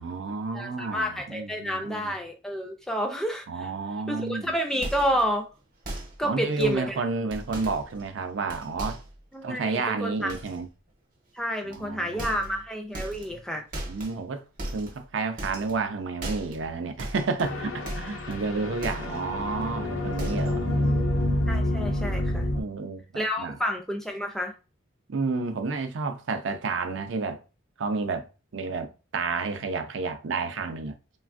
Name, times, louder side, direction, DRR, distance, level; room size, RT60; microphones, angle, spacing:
voice 1, 0.0-2.1 3.5-4.5 6.2-9.0 9.4-10.7 11.6-12.5 13.3-13.4 13.9-14.4 14.7-21.1 22.6-23.6 25.1-27.4 27.8-30.9, right 4 dB, 65° right, 0.5 m, -31 dB
voice 2, 0.5-3.7 4.1-5.5 6.2-7.0 9.3-10.3 11.3-13.6 21.5-22.5 23.2-24.5, equal, ahead, 0.4 m, -30 dB
sound 1, 4.8-5.3 5.8-6.2 6.5-6.8 7.3-8.2 8.5-9.2 10.3-10.6 11.7-11.9 12.2-12.7 12.9-13.4 13.7-14.2 14.6-15.1 15.4-15.9 16.2-16.7 17.0-18.4 18.8-19.3 19.6-19.7 20.1-20.6 20.9-21.2 21.5-21.6, right 1 dB, 45° right, 0.8 m, -37 dB
sound 2, 17.4-22.6, left 1 dB, 90° left, 0.6 m, -28 dB
3.2 x 2.3 x 2.4 m
head